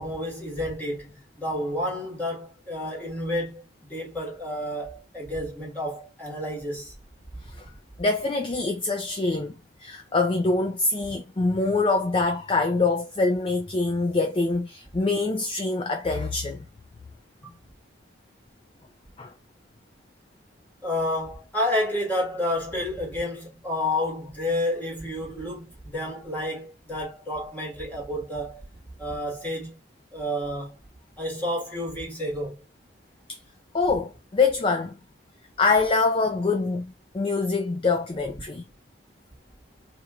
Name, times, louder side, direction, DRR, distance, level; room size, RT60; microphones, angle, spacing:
voice 1, 0.0-6.9 20.8-28.6 29.0-29.8 30.1-30.8 31.2-32.6, left 1 dB, 10° left, 1.6 m, -30 dB
voice 2, 8.0-9.5 9.8-16.6 19.2-19.3 33.3-33.4 33.7-34.9 35.6-36.9 37.1-38.6, left 3 dB, 25° left, 0.4 m, -24 dB
4.3 x 2.9 x 2.4 m
head